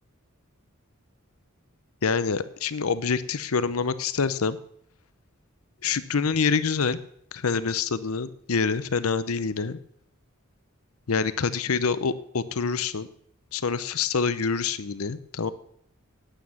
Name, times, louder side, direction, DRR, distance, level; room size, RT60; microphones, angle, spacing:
voice 1, 2.0-4.6 5.8-7.0 7.3-9.8 11.1-13.1 13.5-15.5, left 5 dB, 80° left, 15 dB, 0.7 m, -26 dB
9.6 x 9.1 x 7.1 m, 0.68 s
head